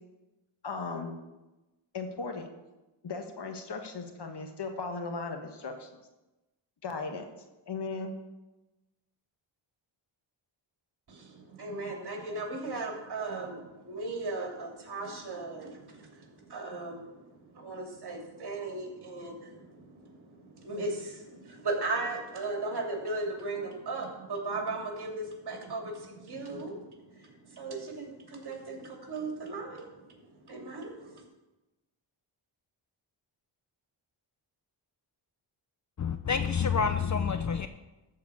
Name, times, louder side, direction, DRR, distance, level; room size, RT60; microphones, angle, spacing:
voice 1, 0.6-1.1 1.9-2.5 3.0-5.9 6.8-7.2 7.7-8.1, left 4 dB, 55° left, 5 dB, 1.5 m, -37 dB
voice 2, 11.1-17.2 17.5-29.9 30.5-31.2, right 3 dB, 55° right, 1 dB, 2.9 m, -37 dB
voice 3, 36.0-37.7, left 6 dB, 40° left, 10 dB, 0.6 m, -28 dB
14.0 x 4.6 x 7.0 m, 1.0 s
cardioid pair, 85°, 47 cm